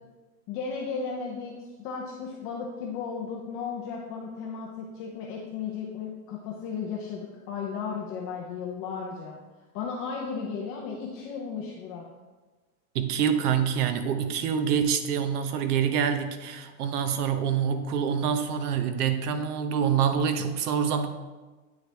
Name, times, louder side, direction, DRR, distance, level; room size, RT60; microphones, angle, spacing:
voice 1, 0.5-9.4 9.7-12.0, left 5 dB, 30° left, -2 dB, 0.6 m, -35 dB
voice 2, 12.9-21.1, right 7 dB, 85° right, 8 dB, 0.9 m, -26 dB
8.6 x 4.8 x 3.4 m, 1.2 s
supercardioid pair, 165°, 45 cm